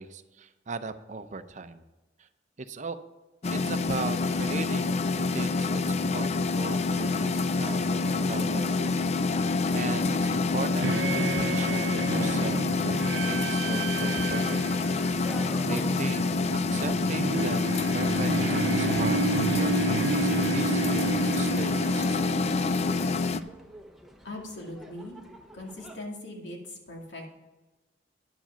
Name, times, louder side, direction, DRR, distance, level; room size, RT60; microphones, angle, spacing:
voice 1, 0.0-1.8 2.2-2.3 2.6-3.0 3.5-14.8 15.1-22.4, right 3 dB, 40° right, 11 dB, 0.6 m, -38 dB
sound 1, 3.4-23.4, left 3 dB, 35° left, 0.4 m, -27 dB
sound 2, 10.8-22.9, right 5 dB, 85° right, 0.6 m, -32 dB
sound 3, 14.6-26.0, equal, ahead, 1.0 m, -49 dB
voice 2, 24.2-25.2 25.5-27.3, left 1 dB, 75° left, 0 dB, 2.2 m, -40 dB
10.0 x 7.5 x 5.6 m, 1.1 s
head